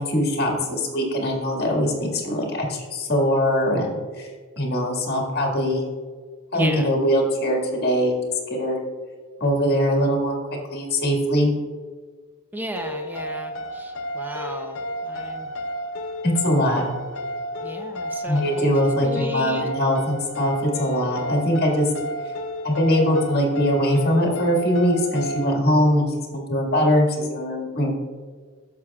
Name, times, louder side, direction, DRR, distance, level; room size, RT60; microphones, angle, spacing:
voice 1, 0.0-4.3 4.6-5.8 6.5-8.2 8.5-8.8 9.4-10.4 10.7-11.5 16.2-16.8 18.3-21.9 22.6-26.1 26.3-27.9, equal, 50° left, 0 dB, 1.9 m, -22 dB
voice 2, 6.5-6.9 12.5-15.5 17.6-18.7 19.0-19.7, right 1 dB, 10° right, 4 dB, 0.6 m, -34 dB
sound 1, 12.8-25.6, equal, 65° left, 0.6 m, -32 dB
11.5 x 7.2 x 2.4 m, 1.5 s
head